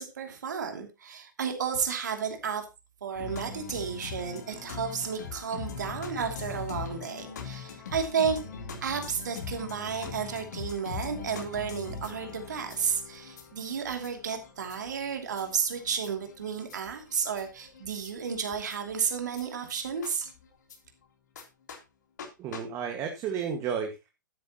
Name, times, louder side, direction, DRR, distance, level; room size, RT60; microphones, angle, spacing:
voice 1, 0.0-2.6 3.0-8.4 8.8-20.3, right 6 dB, 60° right, 5 dB, 2.7 m, -32 dB
sound 1, 3.2-20.8 21.4-21.5 21.7-21.8 22.2-22.3 22.5-22.6, left 6 dB, 60° left, 3.4 m, -42 dB
voice 2, 22.4-24.1, right 7 dB, 25° right, 5 dB, 1.8 m, -32 dB
12.0 x 11.5 x 3.0 m, 0.26 s
figure-of-eight pair, 115°, 11 cm